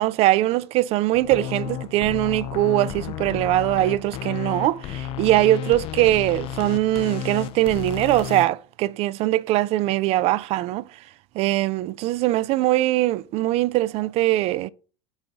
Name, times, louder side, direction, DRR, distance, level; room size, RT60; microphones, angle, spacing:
voice 1, 0.0-10.9 11.3-14.7, right 16 dB, 50° right, 0.4 m, -21 dB
sound 1, 1.1-8.5, left 11 dB, 45° left, 0.4 m, -33 dB
8.0 x 4.0 x 3.9 m
hypercardioid pair, 95°, 14 cm